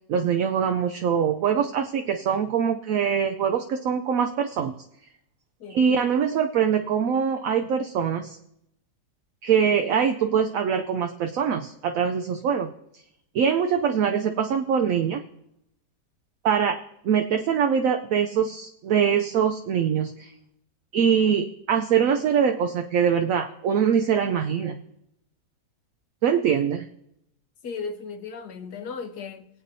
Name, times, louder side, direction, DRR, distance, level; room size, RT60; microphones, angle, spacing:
voice 1, 0.1-4.7 5.7-8.4 9.4-12.7 13.3-15.2 16.4-20.3 20.9-24.8 26.2-26.9, right 7 dB, 70° right, 5 dB, 0.8 m, -23 dB
voice 2, 27.6-29.5, left 5 dB, 70° left, 7 dB, 1.5 m, -35 dB
22.5 x 8.2 x 2.7 m, 0.79 s
omnidirectional pair, 1.8 m